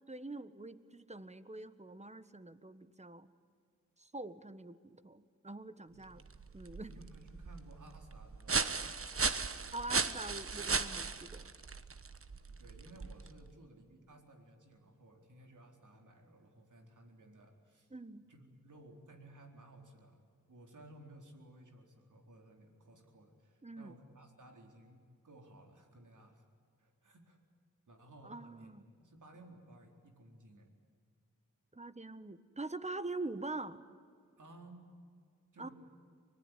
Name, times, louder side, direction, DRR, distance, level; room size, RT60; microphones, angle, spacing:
voice 1, 0.1-3.3 4.0-6.3 6.5-6.9 9.7-11.5 17.9-18.2 23.6-24.0 28.2-28.9 31.7-33.8 35.6-35.7, right 2 dB, 20° right, 13 dB, 1.4 m, -44 dB
sound 1, 6.0-13.5, right 4 dB, 45° right, 1.3 m, -37 dB
voice 2, 6.9-8.7 12.5-17.9 18.3-20.2 20.5-26.4 26.8-27.4 27.9-30.7 34.4-34.9 35.5-35.7, right 1 dB, 70° right, 2 dB, 4.3 m, -57 dB
24.5 x 19.5 x 9.9 m, 2.1 s
cardioid pair, 45°, 32 cm